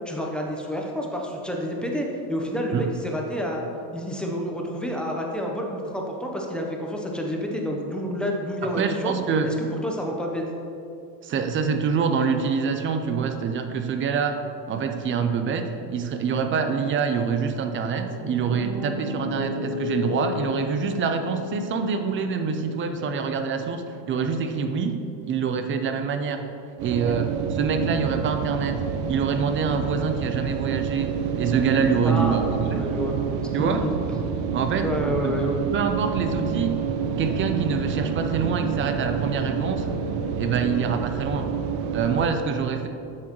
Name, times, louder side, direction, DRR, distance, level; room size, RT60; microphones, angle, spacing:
voice 1, 0.1-3.6 3.9-9.1 9.4-9.5 9.8-10.4 32.0-33.2 33.6-33.9 34.8-35.6, equal, ahead, -1 dB, 0.7 m, -29 dB
voice 2, 8.6-9.5 11.2-14.4 14.7-25.0 25.3-26.4 26.8-28.8 29.1-32.4 32.7-32.9 33.5-33.8 34.5-34.9 35.2-35.4 35.7-36.8 37.2-39.9 40.4-41.5 41.9-42.9, right 6 dB, 30° right, 7 dB, 0.4 m, -25 dB
Piano, 17.9-26.0, left 2 dB, 45° right, 1.5 m, -35 dB
sound 1, 26.8-42.3, right 6 dB, 75° right, 0.7 m, -28 dB
8.4 x 6.2 x 3.0 m, 2.6 s
supercardioid pair, 125°, 47 cm